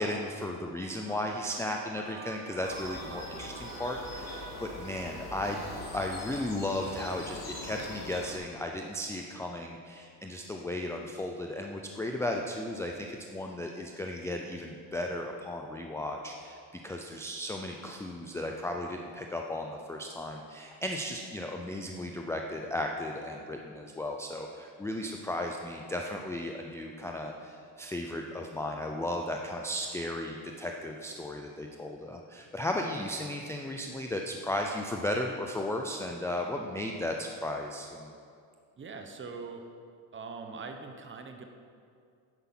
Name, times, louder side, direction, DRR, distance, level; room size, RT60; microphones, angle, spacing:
voice 1, 0.0-5.6 5.9-38.1, left 1 dB, 5° left, 1 dB, 0.4 m, -35 dB
sound 1, 0.7-7.1, right 5 dB, 70° right, 1.1 m, -48 dB
sound 2, 2.6-8.4, left 2 dB, 40° left, 2.8 m, -42 dB
voice 2, 38.8-39.6 40.1-41.4, right 4 dB, 25° right, 4 dB, 1.0 m, -42 dB
9.9 x 9.5 x 6.0 m, 2.4 s
cardioid pair, 140°, 42 cm